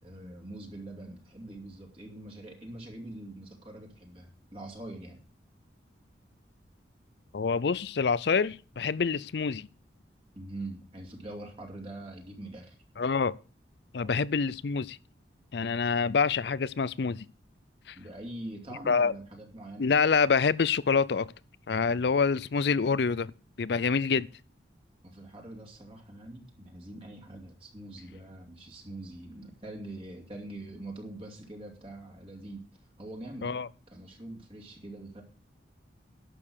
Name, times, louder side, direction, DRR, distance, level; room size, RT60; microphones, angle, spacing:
voice 1, 0.0-5.2 10.3-12.8 14.0-14.3 18.0-19.9 25.0-32.7 33.0-33.5 33.9-35.2, right 1 dB, 30° right, 2.4 m, -44 dB
voice 2, 7.3-9.7 13.0-13.4 13.9-15.0 15.5-17.3 17.9-18.0 18.9-19.1 19.8-21.3 21.7-23.3 23.6-24.3 33.4-33.7, left 5 dB, 65° left, 0.5 m, -26 dB
11.5 x 7.0 x 6.4 m
head